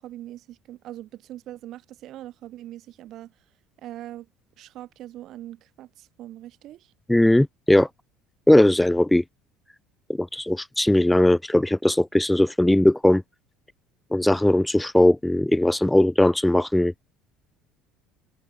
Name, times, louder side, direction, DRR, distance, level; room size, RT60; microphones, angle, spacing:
voice 1, 0.0-3.3 3.8-4.3 4.6-6.9, right 13 dB, 60° right, 4.1 m, -41 dB
voice 2, 7.1-7.9 8.5-9.2 10.2-13.2 14.1-16.9, left 1 dB, 5° left, 0.4 m, -19 dB
hypercardioid pair, 80°, 0 cm